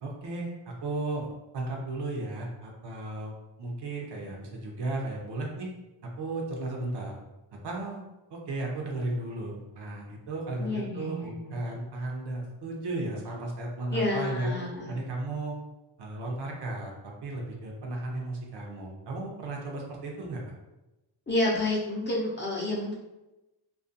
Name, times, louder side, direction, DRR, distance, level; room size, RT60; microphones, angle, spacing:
voice 1, 0.0-1.3 1.5-3.3 3.6-5.7 6.0-7.2 7.6-8.0 8.3-14.6 14.9-15.6 16.0-20.4, right 2 dB, 60° right, -1 dB, 0.6 m, -34 dB
voice 2, 10.6-11.8 13.9-14.9 21.3-22.9, left 2 dB, 25° left, -5 dB, 0.5 m, -30 dB
2.4 x 2.2 x 2.5 m, 1.0 s
wide cardioid pair, 105°, 46 cm